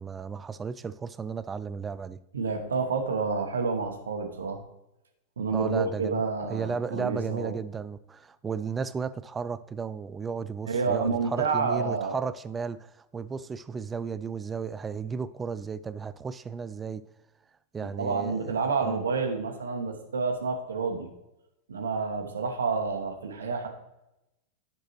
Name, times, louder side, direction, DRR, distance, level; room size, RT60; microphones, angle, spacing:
voice 1, 0.0-2.2 5.5-6.2 6.5-17.0 17.7-19.0, right 5 dB, 15° right, 0.3 m, -34 dB
voice 2, 2.3-4.6 5.4-7.6 10.7-12.2 17.8-21.1 21.7-23.7, right 4 dB, 70° right, 1.1 m, -29 dB
10.0 x 6.0 x 3.0 m
figure-of-eight pair, 90°, 0 cm